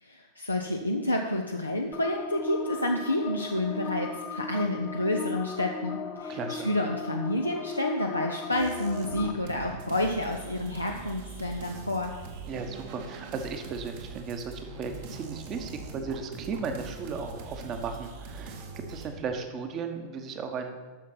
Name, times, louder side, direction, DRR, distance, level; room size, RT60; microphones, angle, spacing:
voice 1, 0.0-12.1, left 1 dB, 85° left, 1 dB, 0.6 m, -29 dB
sound 1, 1.9-9.3, left 3 dB, 35° left, 1.1 m, -37 dB
voice 2, 6.3-6.7 12.5-20.9, right 5 dB, 30° right, 6 dB, 1.1 m, -36 dB
sound 2, 8.5-19.1, right 4 dB, 50° right, 1.3 m, -42 dB
9.2 x 6.4 x 5.9 m, 1.3 s
figure-of-eight pair, 90°, 0 cm